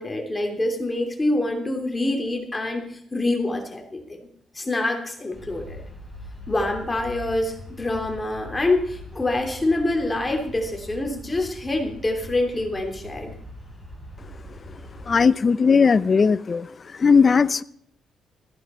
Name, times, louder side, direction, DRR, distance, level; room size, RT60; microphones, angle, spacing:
voice 1, 0.0-4.2 4.5-5.8 6.5-13.3, left 2 dB, 20° left, 3 dB, 3.1 m, -26 dB
sound 1, 5.3-15.2, left 1 dB, 10° right, 6.7 m, -41 dB
voice 2, 15.1-16.7 17.0-17.6, left 5 dB, 35° left, 17 dB, 0.6 m, -17 dB
16.5 x 14.5 x 4.5 m, 0.68 s
cardioid pair, 90°, 0 cm